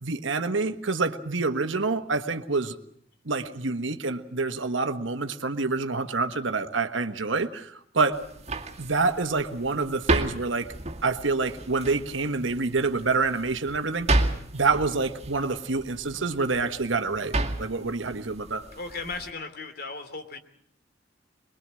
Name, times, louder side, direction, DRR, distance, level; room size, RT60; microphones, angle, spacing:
voice 1, 0.0-2.8 3.2-8.2 8.8-10.7 11.0-14.2 14.5-18.7, right 3 dB, 80° right, 8 dB, 1.4 m, -27 dB
sound 1, 8.1-19.3, right 2 dB, 35° right, 2.2 m, -32 dB
voice 2, 18.8-20.4, left 3 dB, 55° left, 8 dB, 2.7 m, -36 dB
23.0 x 22.0 x 7.6 m, 0.66 s
head